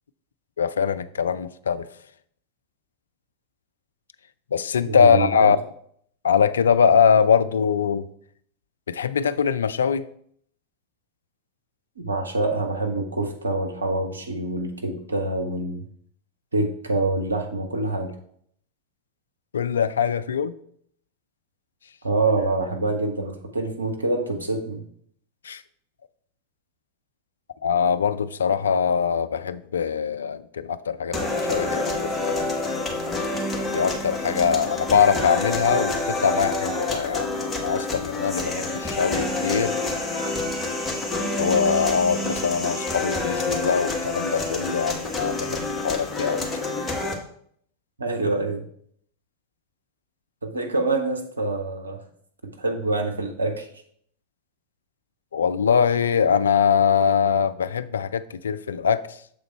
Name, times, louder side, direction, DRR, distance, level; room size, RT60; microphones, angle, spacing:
voice 1, 0.6-1.9 4.5-5.6 6.2-8.1 8.9-10.0 19.5-20.5 25.4-25.6 27.6-32.5 33.7-39.8 41.4-46.7 55.3-59.2, left 7 dB, 70° left, 0.3 m, -22 dB
voice 2, 4.8-5.5 12.0-15.9 16.5-18.1 22.0-24.8 48.0-48.6 50.4-52.0 52.5-53.7, right 2 dB, 75° right, 1.0 m, -26 dB
sound 1, 31.1-47.1, left 2 dB, 10° left, 1.2 m, -28 dB
6.8 x 3.8 x 4.5 m
figure-of-eight pair, 90°, 0 cm